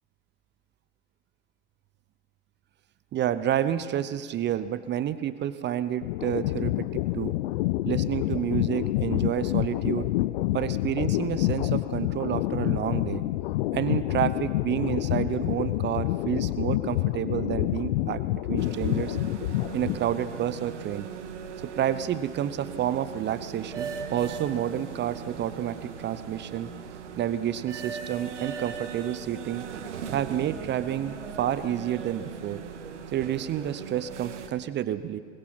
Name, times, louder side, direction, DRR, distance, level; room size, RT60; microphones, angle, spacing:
voice 1, 3.1-7.4 7.8-10.1 10.5-13.2 13.7-18.2 18.5-19.2 19.7-21.1 21.6-26.7 27.2-29.7 30.1-32.6 33.1-35.2, right 11 dB, 30° right, 13 dB, 0.9 m, -29 dB
sound 1, 6.0-20.2, left 17 dB, 55° left, 0.6 m, -28 dB
sound 2, 18.6-34.5, right 7 dB, 75° right, 2.0 m, -39 dB
22.5 x 21.0 x 6.2 m, 2.1 s
hypercardioid pair, 90°, 36 cm